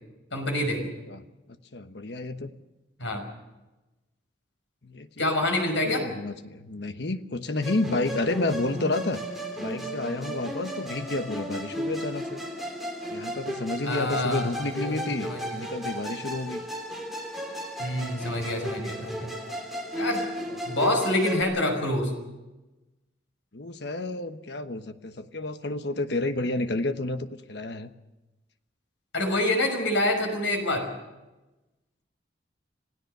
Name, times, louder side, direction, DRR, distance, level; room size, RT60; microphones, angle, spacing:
voice 1, 0.3-0.9 3.0-3.2 5.2-6.1 13.8-15.5 17.8-19.3 20.0-20.2 20.7-22.1 29.1-30.9, left 1 dB, 80° left, 4 dB, 5.8 m, -26 dB
voice 2, 1.7-2.5 4.8-5.2 5.8-9.2 9.6-12.4 13.1-16.6 20.5-20.8 23.5-27.9, left 2 dB, 60° left, 10 dB, 1.1 m, -30 dB
Musical instrument, 7.6-21.4, equal, ahead, 3.1 m, -35 dB
27.0 x 17.0 x 6.7 m, 1.1 s
head